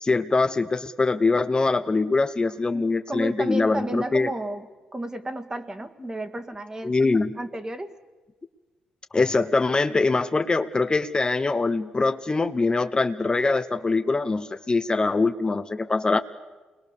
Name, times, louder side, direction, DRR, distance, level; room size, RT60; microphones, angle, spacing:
voice 1, 0.0-4.3 6.8-7.4 9.1-16.2, left 3 dB, 30° left, 9 dB, 1.0 m, -23 dB
voice 2, 2.4-4.7 4.9-7.0 7.4-7.9, right 1 dB, 20° right, 8 dB, 1.9 m, -33 dB
28.0 x 21.5 x 6.9 m, 1.3 s
supercardioid pair, 65°, 3 cm